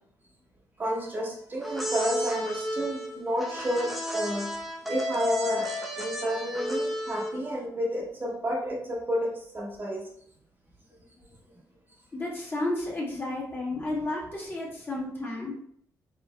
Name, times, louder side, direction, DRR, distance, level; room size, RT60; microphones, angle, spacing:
voice 1, 0.8-4.5 4.8-5.7 6.0-10.1, equal, 30° right, -2 dB, 0.9 m, -30 dB
sound 1, 1.6-7.5, left 1 dB, ahead, 0.6 m, -32 dB
voice 2, 12.1-15.5, left 2 dB, 30° left, -4 dB, 1.5 m, -32 dB
4.8 x 3.1 x 3.0 m, 0.67 s
cardioid pair, 130°, 7 cm